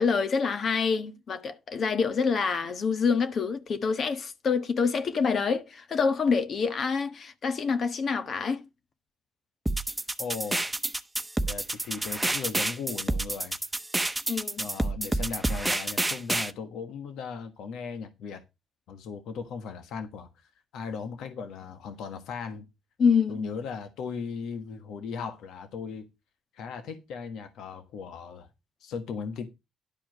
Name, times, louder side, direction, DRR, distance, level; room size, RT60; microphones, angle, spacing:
voice 1, 0.0-8.6 14.3-14.6 23.0-23.4, left 5 dB, 55° left, 1.4 m, -26 dB
sound 1, 9.7-16.5, right 2 dB, 10° right, 0.9 m, -29 dB
voice 2, 10.2-10.6 11.5-13.6 14.6-18.4 18.9-22.6 23.3-26.1 26.5-28.5 28.8-29.5, left 5 dB, 85° left, 1.4 m, -37 dB
11.5 x 4.9 x 6.1 m
cardioid pair, 90°, 0 cm